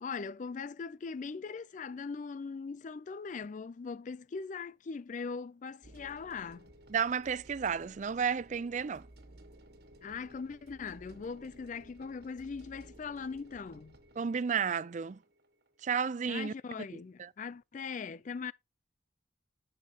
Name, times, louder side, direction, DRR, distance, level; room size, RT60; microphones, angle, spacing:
voice 1, 0.0-6.7 10.0-14.0 16.3-18.5, left 5 dB, 40° left, 0.4 m, -40 dB
sound 1, 5.8-15.9, right 1 dB, 55° right, 1.7 m, -57 dB
voice 2, 6.9-9.1 14.2-15.2 15.8-16.5 17.2-17.3, right 6 dB, 40° right, 0.4 m, -32 dB
11.5 x 6.6 x 2.9 m
head